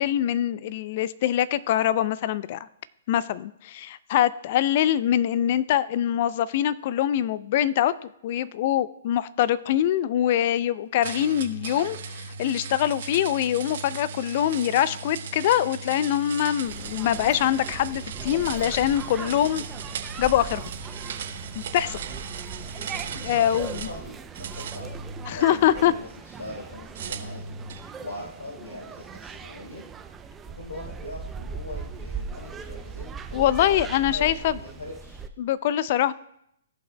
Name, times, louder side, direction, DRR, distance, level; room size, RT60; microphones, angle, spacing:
voice 1, 0.0-2.6 3.1-7.9 8.2-19.6 20.2-20.7 21.6-22.0 23.1-23.8 25.3-25.9 33.3-34.6 35.4-36.1, left 11 dB, 50° left, 18 dB, 0.3 m, -24 dB
sound 1, 11.0-24.0 24.3-25.8 26.9-27.9, right 5 dB, 60° right, 0.8 m, -37 dB
sound 2, 16.6-35.3, right 5 dB, 15° right, 0.5 m, -39 dB
voice 2, 23.3-25.0 25.3-27.5 28.0-29.8 30.4-35.2, left 1 dB, 80° left, -6 dB, 3.2 m, -41 dB
15.5 x 5.5 x 2.2 m, 0.75 s
hypercardioid pair, 125°, 0 cm